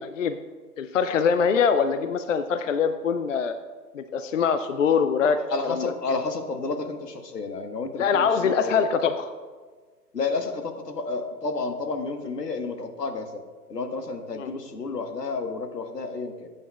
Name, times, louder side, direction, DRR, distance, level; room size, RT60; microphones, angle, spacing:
voice 1, 0.8-3.6 3.9-5.4 5.6-5.9 8.0-9.3 14.4-14.5, left 6 dB, 55° left, 10 dB, 0.5 m, -23 dB
voice 2, 5.5-8.9 10.1-13.4 13.7-16.5, left 3 dB, 80° left, 6 dB, 1.3 m, -31 dB
14.0 x 8.9 x 2.3 m, 1.5 s
figure-of-eight pair, 135°, 48 cm